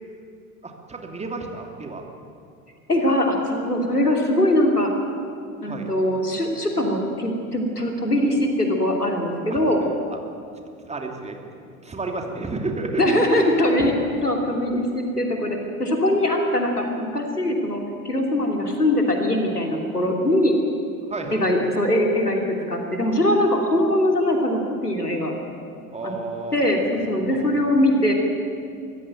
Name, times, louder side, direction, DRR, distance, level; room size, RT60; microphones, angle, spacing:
voice 1, 0.6-2.1 5.6-5.9 9.5-9.6 10.8-11.4 11.8-13.2 13.8-13.9 21.1-21.4 25.9-26.7 27.3-27.6, right 3 dB, 15° right, 3 dB, 2.9 m, -31 dB
voice 2, 2.9-4.9 5.6-9.8 13.0-13.9 14.2-20.5 21.3-25.3 26.0-26.1 26.5-28.1, left 1 dB, 90° left, 2 dB, 3.0 m, -22 dB
24.0 x 15.5 x 9.3 m, 2.4 s
figure-of-eight pair, 80°, 45 cm